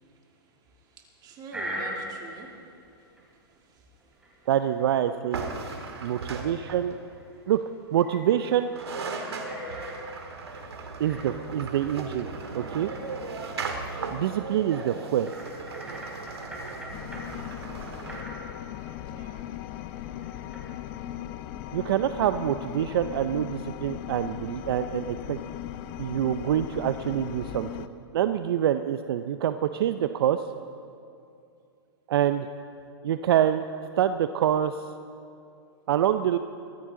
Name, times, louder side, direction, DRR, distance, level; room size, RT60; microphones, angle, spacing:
voice 1, 0.0-2.7 3.0-4.5 5.3-6.5 7.3-7.4 14.1-14.5 19.0-19.5 21.5-21.8, right 3 dB, 30° right, 1 dB, 2.6 m, -49 dB
sound 1, 1.5-2.4 3.2-3.3 4.2-5.0 5.4-5.7 6.0-6.1 6.3-7.5 7.9-10.0 11.0-12.0 12.5-13.6 13.9-14.0 15.2-17.2 18.0-21.4, equal, 5° right, 3.7 m, -42 dB
voice 2, 4.5-5.4 6.0-7.0 7.5-7.6 7.9-8.7 11.0-12.3 12.5-12.9 14.1-15.3 21.7-25.4 26.0-27.9 28.1-30.4 32.1-32.5 33.0-33.6 34.0-34.8 35.9-36.4, right 10 dB, 70° right, 10 dB, 0.6 m, -26 dB
sound 2, 5.3-7.1 8.5-8.6 8.7-18.2, right 4 dB, 90° right, 1.9 m, -37 dB
sound 3, 16.9-27.9, left 12 dB, 45° left, 0.7 m, -38 dB
22.0 x 14.5 x 3.8 m, 2.6 s
hypercardioid pair, 125°, 13 cm